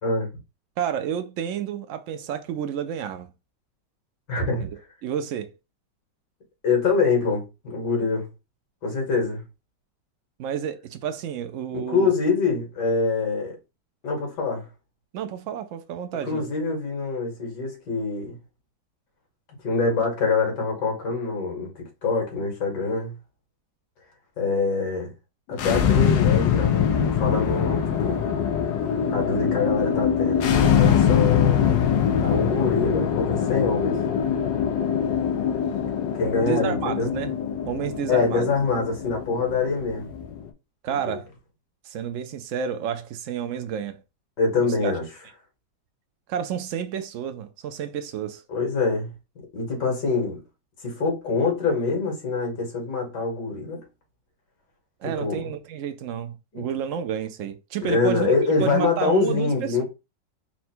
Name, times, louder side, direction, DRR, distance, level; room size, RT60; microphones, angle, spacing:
voice 1, 0.8-3.3 4.6-5.5 10.4-12.1 15.1-16.4 36.4-37.3 37.6-38.5 40.8-41.3 41.8-44.0 44.8-44.9 46.3-48.4 55.0-58.3 58.6-59.8, right 8 dB, 75° right, 0.7 m, -30 dB
voice 2, 4.3-4.7 6.6-8.3 8.8-9.4 11.7-13.6 14.0-14.7 16.3-18.4 19.6-21.7 22.0-23.1 24.4-25.1 25.5-28.2 29.1-31.8 32.2-34.0 36.1-37.1 38.1-40.1 40.9-41.2 44.4-45.1 48.5-49.1 49.5-50.4 50.8-53.8 55.2-55.5 56.5-56.6 57.8-59.8, left 4 dB, 70° left, 2.3 m, -25 dB
sound 1, 25.5-40.5, left 8 dB, 90° left, 1.4 m, -23 dB
4.4 x 2.1 x 4.3 m
omnidirectional pair, 1.9 m